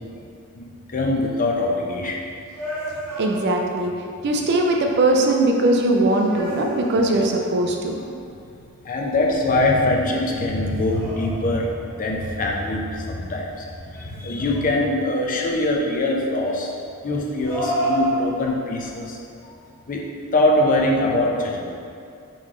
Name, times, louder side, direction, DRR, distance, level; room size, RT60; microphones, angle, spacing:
voice 1, 0.6-2.2 8.8-16.7 17.0-19.2 19.4-19.6 19.9-20.0 20.3-21.8, left 1 dB, 40° left, -1 dB, 0.5 m, -23 dB
sound 1, 2.5-3.9 6.1-7.5 10.5-11.8 13.9-15.0 17.4-18.8, right 1 dB, 5° left, 1.4 m, -30 dB
voice 2, 3.2-3.9 4.2-8.0, right 2 dB, 50° right, 1 dB, 0.4 m, -20 dB
3.9 x 3.1 x 3.6 m, 2.4 s
head